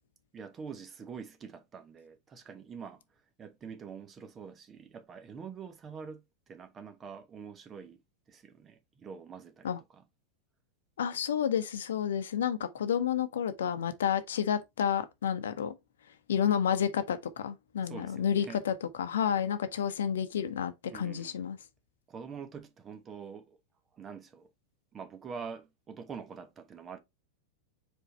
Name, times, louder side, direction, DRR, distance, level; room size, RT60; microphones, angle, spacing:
voice 1, 0.3-3.0 3.4-8.0 8.3-10.0 17.8-18.6 20.9-21.4 22.1-23.6 23.9-24.5 24.9-27.0, right 6 dB, 25° right, 1.1 m, -45 dB
voice 2, 11.0-15.7 16.3-21.6, left 8 dB, 65° left, 0.9 m, -30 dB
4.9 x 4.5 x 4.2 m
figure-of-eight pair, 90°, 0 cm